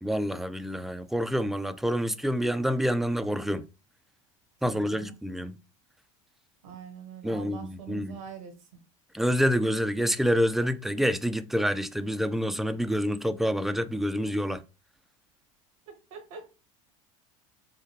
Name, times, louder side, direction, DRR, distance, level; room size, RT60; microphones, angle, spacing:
voice 1, 0.0-3.6 4.6-5.6 7.2-8.2 9.1-14.6, equal, ahead, 0.3 m, -27 dB
voice 2, 4.6-5.2 6.6-8.5 15.9-16.5, right 6 dB, 75° right, 1.2 m, -44 dB
3.6 x 2.7 x 2.9 m
hypercardioid pair, 90°, 17 cm